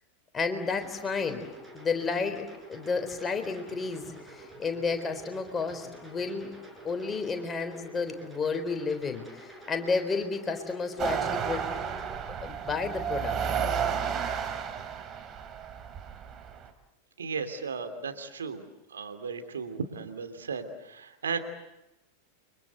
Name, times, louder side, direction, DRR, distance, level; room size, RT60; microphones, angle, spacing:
voice 1, 0.3-1.4 1.7-6.5 6.8-11.6 12.4-13.4, left 4 dB, 20° left, 6 dB, 3.9 m, -31 dB
sound 1, 0.7-12.2, right 1 dB, 10° right, 7.2 m, -49 dB
sound 2, 11.0-16.7, right 7 dB, 30° right, 2.9 m, -32 dB
voice 2, 17.2-18.6 18.9-21.4, right 5 dB, 70° right, 7 dB, 2.9 m, -35 dB
30.0 x 25.0 x 8.0 m, 0.92 s
figure-of-eight pair, 90°, 0 cm